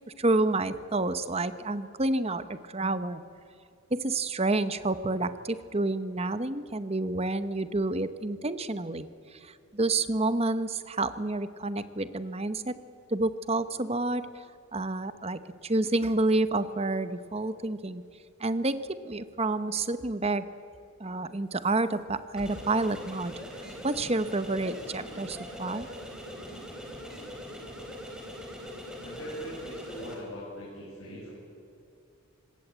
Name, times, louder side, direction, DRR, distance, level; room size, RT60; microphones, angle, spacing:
voice 1, 0.2-3.2 3.9-12.8 13.1-14.4 14.7-18.0 18.4-20.5 21.0-23.3 23.8-25.9, right 2 dB, 30° right, 12 dB, 0.9 m, -29 dB
sound 1, 22.3-30.2, equal, 5° right, 4.0 m, -42 dB
voice 2, 29.0-31.3, equal, 80° left, -4 dB, 7.0 m, -41 dB
25.5 x 20.5 x 8.2 m, 2.6 s
head